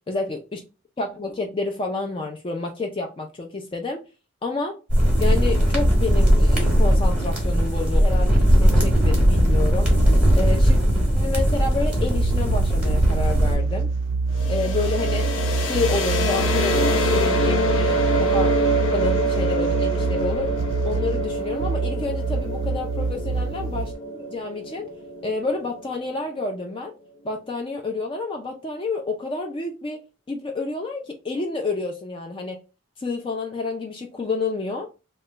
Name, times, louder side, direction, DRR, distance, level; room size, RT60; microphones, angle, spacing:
voice 1, 0.1-0.6 1.0-4.0 4.4-4.8 5.2-9.9 10.3-10.8 11.1-13.9 14.5-15.3 15.7-18.5 18.9-20.6 20.9-24.9 25.2-26.9 27.2-32.6 33.0-34.9, left 3 dB, 25° left, 0.4 m, -29 dB
sound 1, 4.9-13.6, equal, 5° right, 0.9 m, -18 dB
sound 2, 12.1-23.9, right 4 dB, 65° right, 0.3 m, -26 dB
sound 3, 14.3-26.0, equal, 80° left, 0.7 m, -25 dB
2.9 x 2.2 x 3.1 m
head